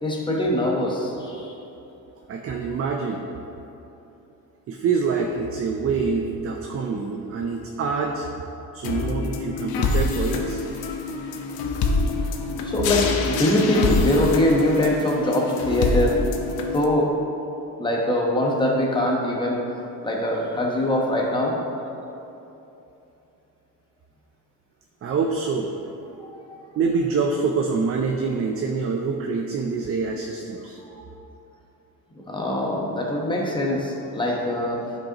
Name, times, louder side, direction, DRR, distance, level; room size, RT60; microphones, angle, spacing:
voice 1, 0.0-1.5 12.2-16.2 16.7-17.1 17.8-19.6 20.0-21.5 26.2-26.6 30.8-31.0 32.3-34.8, left 1 dB, 15° left, -2 dB, 1.0 m, -23 dB
voice 2, 2.3-3.2 4.7-8.3 8.7-10.6 25.0-25.7 26.8-30.8, right 5 dB, 40° right, 3 dB, 0.5 m, -25 dB
sound 1, 8.8-16.8, left 3 dB, 80° left, 0.8 m, -26 dB
11.5 x 5.2 x 2.9 m, 2.9 s
cardioid pair, 150°, 36 cm